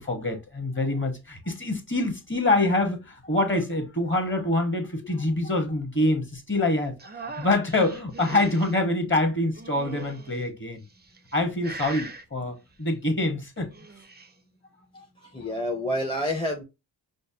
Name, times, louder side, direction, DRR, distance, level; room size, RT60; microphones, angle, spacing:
voice 1, 0.0-6.9 7.2-10.8 11.3-13.7 14.9-15.1, left 2 dB, 25° left, 1.2 m, -25 dB
sound 1, 7.0-8.7 9.6-10.4 11.0-11.4 11.6-12.2 13.6-14.3, right 3 dB, 20° right, 0.5 m, -40 dB
voice 2, 15.3-16.6, left 1 dB, 10° left, 0.8 m, -28 dB
5.1 x 2.1 x 2.7 m
cardioid pair, 65°, 45 cm